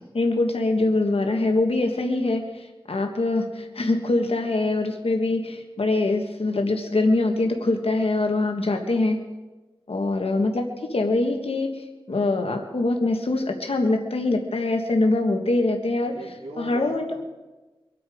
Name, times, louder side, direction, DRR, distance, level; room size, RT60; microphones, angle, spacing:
voice 1, 0.1-9.2 9.9-16.1 16.6-17.1, left 2 dB, 75° left, 3 dB, 1.5 m, -23 dB
voice 2, 16.1-17.1, right 1 dB, 90° right, -2 dB, 3.6 m, -38 dB
24.5 x 8.5 x 5.0 m, 1.2 s
wide cardioid pair, 55°, 10 cm